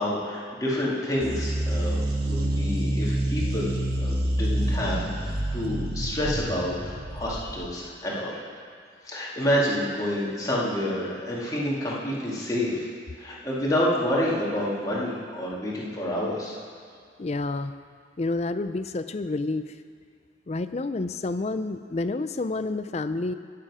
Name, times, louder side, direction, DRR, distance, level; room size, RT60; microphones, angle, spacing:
voice 1, 0.0-2.0 2.3-6.7 7.1-8.4 9.0-12.9 13.1-16.6, left 1 dB, 20° left, -6 dB, 2.4 m, -28 dB
sound 1, 1.2-7.7, right 1 dB, 60° right, 1.7 m, -27 dB
voice 2, 17.2-17.7 18.2-19.7 20.5-23.3, left 2 dB, 35° left, 11 dB, 0.4 m, -29 dB
20.0 x 7.7 x 4.9 m, 2.2 s
head